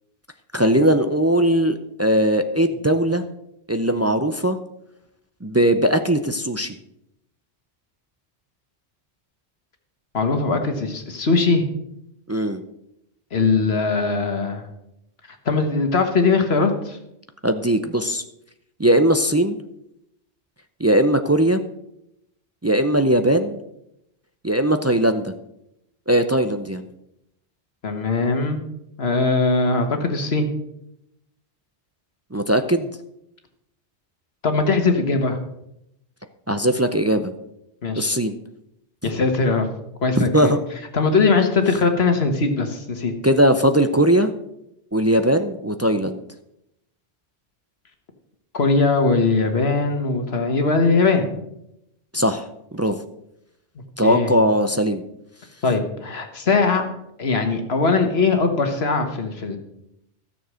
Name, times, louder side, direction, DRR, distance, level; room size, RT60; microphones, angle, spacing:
voice 1, 0.5-3.2 3.7-4.6 5.4-6.8 12.3-12.6 17.4-18.2 18.8-19.6 20.8-21.6 22.6-23.6 24.4-25.3 26.1-26.8 32.3-32.9 36.5-37.3 38.0-38.3 40.2-40.6 43.2-44.3 44.9-46.2 52.1-52.5 52.7-53.0 54.0-55.0, right 1 dB, 25° right, 8 dB, 0.3 m, -19 dB
voice 2, 10.1-11.6 13.3-14.6 15.4-17.0 27.8-28.6 29.0-30.4 34.4-35.4 37.8-38.1 39.0-39.7 40.0-40.5 40.9-43.1 48.5-51.3 54.0-54.3 55.6-56.8 57.2-59.6, left 4 dB, 60° left, 6 dB, 1.6 m, -20 dB
13.0 x 7.0 x 6.3 m, 0.81 s
omnidirectional pair, 1.2 m